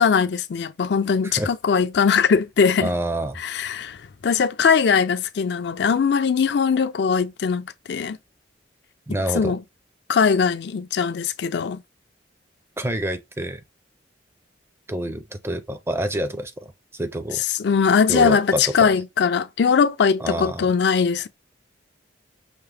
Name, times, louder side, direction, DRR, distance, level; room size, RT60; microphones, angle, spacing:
voice 1, 0.0-2.9 3.4-8.2 9.3-9.6 10.1-11.8 17.6-21.3, left 6 dB, 60° left, 0.4 m, -20 dB
voice 2, 2.8-3.4 9.1-9.6 12.8-13.6 14.9-17.4 18.1-18.9 20.2-20.7, right 1 dB, 15° right, 0.4 m, -27 dB
5.8 x 2.0 x 3.3 m
head